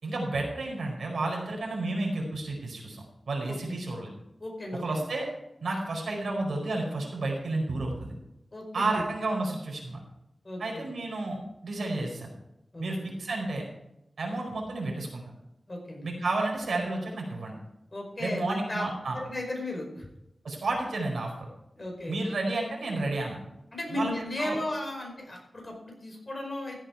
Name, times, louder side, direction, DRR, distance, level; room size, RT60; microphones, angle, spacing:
voice 1, 0.0-4.1 4.8-5.3 5.6-8.1 8.7-10.0 10.6-12.3 12.8-13.6 14.2-15.2 16.0-17.5 18.2-19.2 20.4-21.5 22.1-23.4 23.9-24.1 24.4-24.6, right 2 dB, 85° right, -1 dB, 4.8 m, -31 dB
voice 2, 3.5-3.8 4.4-5.0 8.5-9.0 10.4-10.9 12.7-13.1 15.7-16.1 17.9-18.8 19.1-20.1 21.8-22.2 23.7-26.8, left 1 dB, 35° left, 1 dB, 5.0 m, -35 dB
15.0 x 9.0 x 4.7 m, 0.87 s
wide cardioid pair, 90°, 0 cm